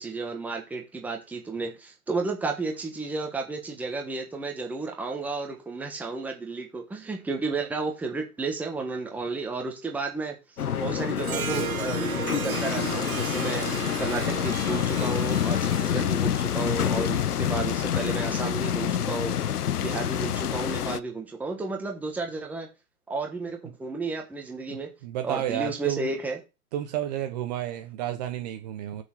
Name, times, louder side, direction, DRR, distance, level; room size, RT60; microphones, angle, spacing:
voice 1, 0.0-10.4 10.7-13.7 14.0-19.3 19.8-22.7 23.1-24.9 25.2-26.4, right 3 dB, 5° right, 1.2 m, -32 dB
sound 1, 10.6-20.9, left 8 dB, 70° left, 1.4 m, -31 dB
Harp, 11.2-16.9, right 9 dB, 65° right, 1.1 m, -35 dB
sound 2, 12.5-21.0, left 10 dB, 90° left, 0.7 m, -29 dB
voice 2, 25.0-26.1 26.7-29.0, right 11 dB, 30° right, 1.0 m, -31 dB
6.4 x 6.2 x 5.8 m
hypercardioid pair, 140°, 45 cm